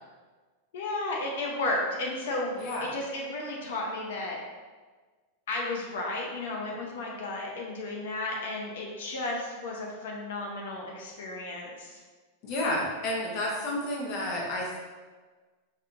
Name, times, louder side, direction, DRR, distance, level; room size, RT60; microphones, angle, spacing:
voice 1, 0.7-4.4 5.5-12.0, left 2 dB, 70° left, -1 dB, 0.7 m, -33 dB
voice 2, 2.5-2.9 12.4-14.8, left 1 dB, 35° left, -3 dB, 0.8 m, -31 dB
5.5 x 2.8 x 2.5 m, 1.4 s
supercardioid pair, 175°, 0 cm